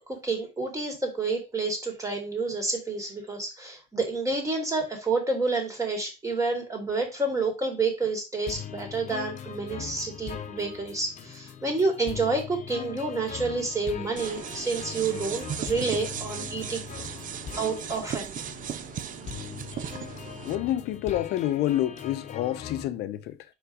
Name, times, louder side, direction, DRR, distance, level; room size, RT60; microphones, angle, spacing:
voice 1, 0.1-16.8 17.6-18.3, right 3 dB, 20° right, 2.5 m, -29 dB
sound 1, 8.5-22.9, left 8 dB, 45° left, 0.9 m, -40 dB
sound 2, 14.2-20.6, right 9 dB, 50° right, 0.6 m, -37 dB
voice 2, 20.4-23.4, left 13 dB, 80° left, 0.7 m, -28 dB
4.8 x 4.0 x 4.9 m
cardioid pair, 110°, 17 cm